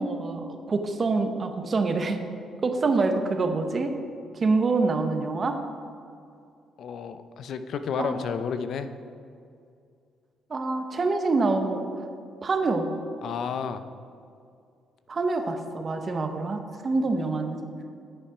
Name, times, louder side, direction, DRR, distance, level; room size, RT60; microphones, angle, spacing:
voice 1, 0.0-2.2 2.6-3.9 4.3-5.6 8.0-8.1 10.5-11.9 12.4-12.9 15.1-17.6, right 3 dB, 40° right, 6 dB, 0.9 m, -26 dB
voice 2, 6.8-8.9 13.2-13.8, left 6 dB, 70° left, 10 dB, 0.5 m, -31 dB
9.9 x 5.5 x 4.8 m, 2.4 s
cardioid pair, 90°, 0 cm